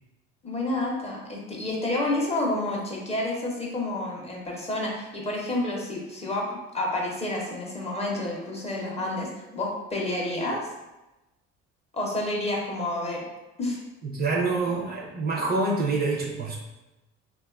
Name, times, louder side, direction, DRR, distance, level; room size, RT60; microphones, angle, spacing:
voice 1, 0.4-6.5 6.7-10.7 11.9-13.2 13.6-13.8, left 2 dB, 20° left, -2 dB, 0.5 m, -29 dB
voice 2, 14.0-16.6, right 3 dB, 30° right, -2 dB, 0.4 m, -26 dB
2.5 x 2.2 x 2.3 m, 1.0 s
supercardioid pair, 90°, 31 cm